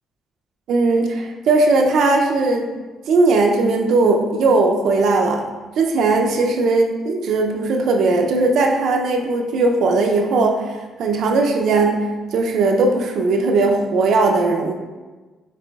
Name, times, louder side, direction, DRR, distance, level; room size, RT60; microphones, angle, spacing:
voice 1, 0.7-2.7 3.1-5.4 5.8-10.6 11.0-14.7, right 3 dB, 75° right, 3 dB, 0.5 m, -18 dB
6.6 x 3.0 x 2.3 m, 1.3 s
cardioid pair, 90°, 0 cm